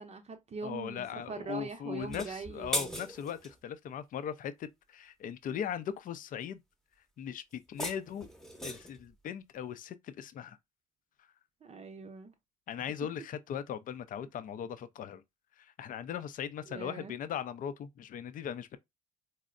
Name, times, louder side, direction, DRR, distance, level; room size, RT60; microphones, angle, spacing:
voice 1, 0.0-3.1 11.6-12.3 16.7-17.2, right 4 dB, 35° right, 0.6 m, -42 dB
voice 2, 0.6-6.6 7.2-8.3 8.6-10.6 12.7-15.2 15.6-18.8, left 8 dB, 50° left, 0.5 m, -39 dB
sound 1, 2.0-3.6 7.5-9.0, equal, ahead, 0.8 m, -38 dB
4.1 x 2.0 x 2.4 m
hypercardioid pair, 60°, 18 cm